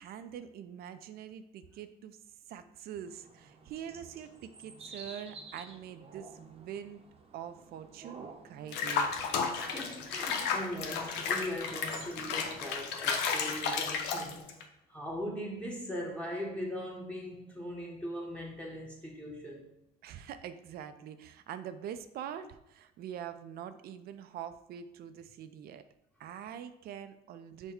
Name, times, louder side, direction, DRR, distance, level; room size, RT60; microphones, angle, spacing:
voice 1, 0.0-2.2 2.5-7.0 7.3-9.2 20.0-25.8 26.2-27.7, right 9 dB, 65° right, 11 dB, 0.4 m, -44 dB
sound 1, 3.1-12.6, right 3 dB, 35° right, 0.7 m, -52 dB
Water / Bathtub (filling or washing), 8.7-14.6, left 5 dB, 90° left, 0.6 m, -33 dB
voice 2, 9.5-14.5 14.9-19.7, equal, 5° left, -2 dB, 0.9 m, -40 dB
5.7 x 2.2 x 4.3 m, 0.86 s
cardioid pair, 110°, 17 cm